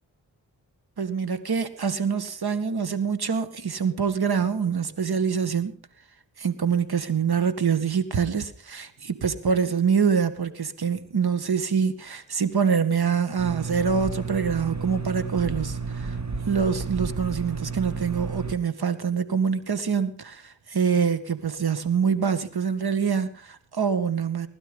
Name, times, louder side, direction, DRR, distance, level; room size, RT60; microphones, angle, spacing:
voice 1, 1.0-5.7 6.4-16.2 16.5-24.5, right 6 dB, 60° right, 2.1 m, -25 dB
sound 1, 13.4-18.6, right 4 dB, 40° right, 2.0 m, -32 dB
20.0 x 12.0 x 5.4 m
cardioid pair, 50°, 43 cm